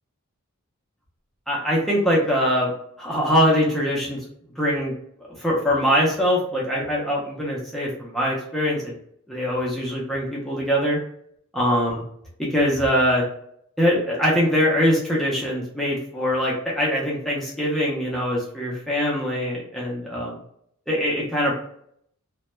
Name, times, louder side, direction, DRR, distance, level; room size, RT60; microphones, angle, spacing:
voice 1, 1.5-2.7 3.0-4.2 4.6-4.9 5.4-8.9 9.3-11.0 11.5-12.0 12.4-13.2 13.8-20.4 20.9-21.5, equal, ahead, -5 dB, 0.4 m, -22 dB
2.1 x 2.0 x 2.9 m, 0.69 s
head